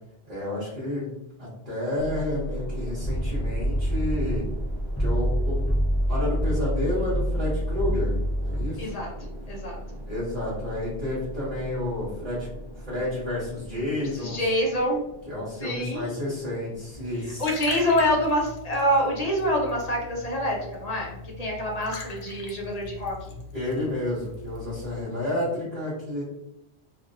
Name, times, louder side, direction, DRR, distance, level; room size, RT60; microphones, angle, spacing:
voice 1, 0.3-1.1 1.4-4.4 5.0-5.7 6.1-8.9 10.1-12.5 12.7-14.4 15.3-17.5 23.5-26.2, left 1 dB, 40° right, -9 dB, 1.1 m, -30 dB
sound 1, 2.0-18.4, equal, 25° right, 0.8 m, -38 dB
Galvansied gong, 3.0-8.7, equal, 20° left, 0.3 m, -26 dB
voice 2, 8.8-9.1 9.5-9.8 14.0-15.0 15.5-16.1 17.1-23.4, equal, 40° left, -2 dB, 0.7 m, -26 dB
Liquid, 16.9-25.0, left 2 dB, 80° left, 1.0 m, -41 dB
2.8 x 2.5 x 2.6 m, 0.87 s
omnidirectional pair, 1.1 m